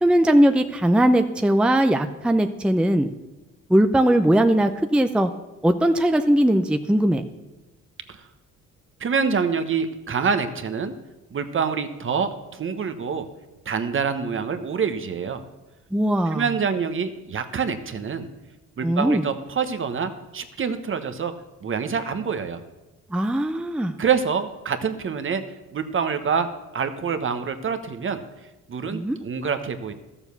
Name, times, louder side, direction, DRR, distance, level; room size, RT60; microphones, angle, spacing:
voice 1, 0.0-3.1 3.7-5.3 5.6-7.2 15.9-16.4 18.8-19.2 23.1-23.9 28.9-29.2, right 1 dB, 5° right, 7 dB, 0.6 m, -19 dB
voice 2, 9.0-10.9 11.3-13.3 13.6-15.4 16.3-18.3 18.8-21.3 21.6-22.6 24.0-25.4 25.7-26.5 26.7-28.2 28.7-29.9, right 6 dB, 45° right, 9 dB, 1.2 m, -26 dB
13.0 x 7.1 x 6.9 m, 1.0 s
cardioid pair, 90°, 30 cm